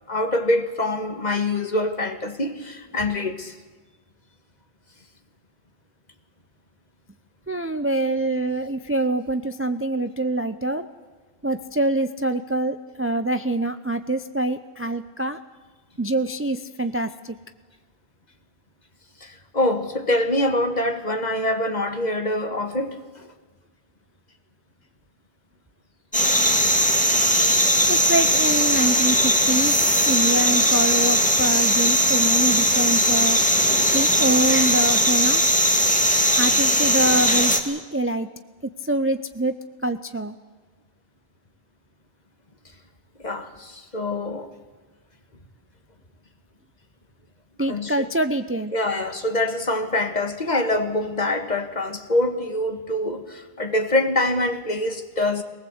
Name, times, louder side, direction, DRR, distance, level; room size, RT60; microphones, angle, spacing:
voice 1, 0.1-3.5 19.2-23.0 43.2-44.5 47.7-48.1 48.7-55.4, left 1 dB, 45° left, 7 dB, 1.7 m, -25 dB
voice 2, 7.5-10.8 11.4-15.4 16.0-17.4 27.2-27.4 27.9-29.8 30.1-33.4 33.9-35.4 36.4-38.3 38.6-39.5 39.8-40.3 47.6-48.7, right 2 dB, 15° right, 10 dB, 0.6 m, -25 dB
sound 1, 26.1-37.6, equal, 5° left, 2.0 m, -19 dB
23.0 x 19.0 x 8.0 m, 1.4 s
omnidirectional pair, 1.1 m